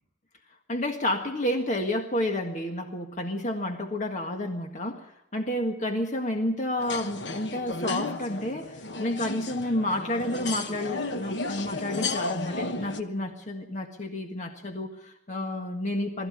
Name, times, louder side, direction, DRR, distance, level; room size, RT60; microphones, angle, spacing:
voice 1, 0.7-16.3, left 1 dB, 40° left, 3 dB, 1.8 m, -30 dB
sound 1, 6.8-13.0, left 3 dB, 75° left, 1.2 m, -33 dB
20.5 x 14.0 x 9.9 m, 0.82 s
head